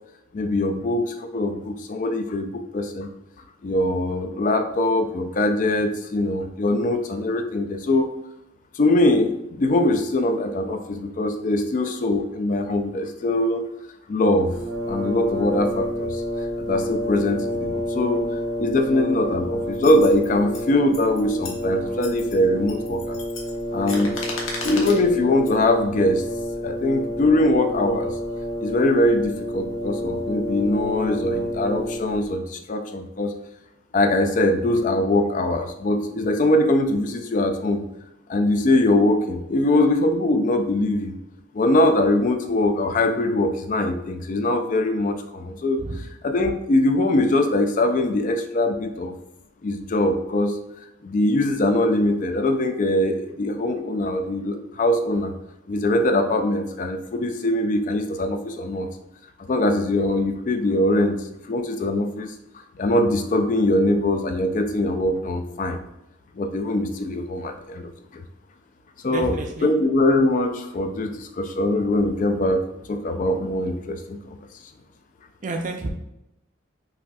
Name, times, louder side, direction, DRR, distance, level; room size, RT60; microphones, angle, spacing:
voice 1, 0.3-3.1 3.6-8.1 8.7-13.7 14.1-14.6 14.9-16.2 16.6-18.3 18.6-23.2 23.7-24.2 24.6-26.2 26.6-28.2 28.6-33.3 33.9-37.8 38.3-41.1 41.5-49.1 49.6-50.6 51.0-55.3 55.7-58.9 59.5-61.2 61.5-62.3 62.8-65.8 66.4-68.2 69.0-72.6 72.9-74.4, left 1 dB, 40° left, 6 dB, 0.3 m, -22 dB
Brass instrument, 14.5-32.3, left 1 dB, 90° right, 0.7 m, -29 dB
sound 1, 19.7-20.6 20.9-21.6 22.0-22.4 22.7-25.0 25.5-25.7, left 3 dB, 85° left, 0.9 m, -35 dB
voice 2, 69.1-69.7 75.4-75.9, right 3 dB, 40° right, 2 dB, 0.5 m, -29 dB
5.6 x 2.6 x 2.3 m, 0.87 s
head